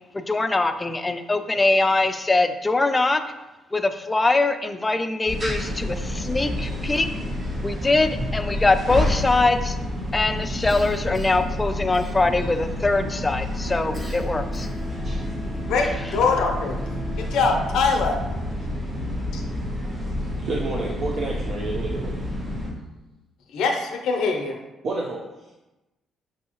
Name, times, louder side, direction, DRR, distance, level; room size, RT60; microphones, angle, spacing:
voice 1, 0.1-3.2 3.7-7.1 7.6-9.8 10.1-14.7, left 2 dB, 20° left, 9 dB, 0.3 m, -22 dB
sound 1, 5.3-22.7, left 1 dB, 40° right, 1.0 m, -29 dB
Cough, 10.7-11.5 11.9-12.6 13.9-15.0, equal, 10° right, 1.1 m, -41 dB
voice 2, 15.7-16.8 17.2-18.1 19.3-19.4 23.5-24.6, left 4 dB, 80° left, 2 dB, 0.5 m, -23 dB
voice 3, 20.4-22.2 24.8-25.5, right 2 dB, 60° right, -3 dB, 0.5 m, -30 dB
5.4 x 2.7 x 2.8 m, 1.0 s
cardioid pair, 90°, 0 cm